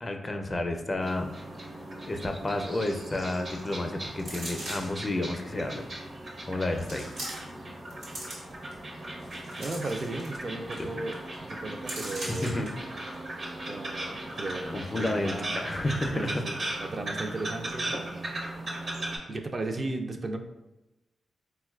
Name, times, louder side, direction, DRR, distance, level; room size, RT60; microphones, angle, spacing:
voice 1, 0.0-1.3 2.1-5.9 6.5-7.1 10.8-10.9 12.4-12.7 14.7-16.7, left 1 dB, 35° left, 5 dB, 0.4 m, -31 dB
sound 1, 1.0-19.2, right 1 dB, 60° right, 0.8 m, -38 dB
sound 2, 4.2-5.0 5.8-5.9 6.8-7.6 7.9-8.7 9.2-10.4 10.7-10.8 11.1-11.3 11.9-12.7 13.1-13.2, right 1 dB, 85° right, 1.1 m, -40 dB
voice 2, 9.6-12.6 13.6-15.7 16.1-18.2 19.3-20.4, right 2 dB, 45° right, 4 dB, 0.4 m, -36 dB
4.1 x 2.2 x 2.3 m, 0.97 s
cardioid pair, 60°, 0 cm